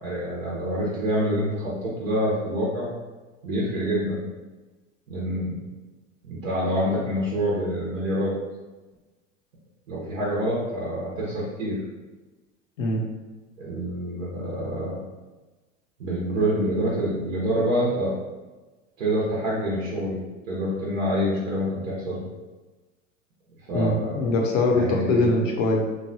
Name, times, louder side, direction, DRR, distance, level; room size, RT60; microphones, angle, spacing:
voice 1, 0.0-2.9 3.4-4.2 5.1-5.6 6.2-8.3 9.9-11.8 13.6-15.0 16.0-18.2 19.0-20.2 20.5-22.2 23.7-24.3 24.7-25.2, equal, 75° right, -6 dB, 0.9 m, -26 dB
voice 2, 23.7-25.8, left 2 dB, 70° left, 0 dB, 0.8 m, -22 dB
3.2 x 2.2 x 2.6 m, 1.2 s
hypercardioid pair, 85°, 40 cm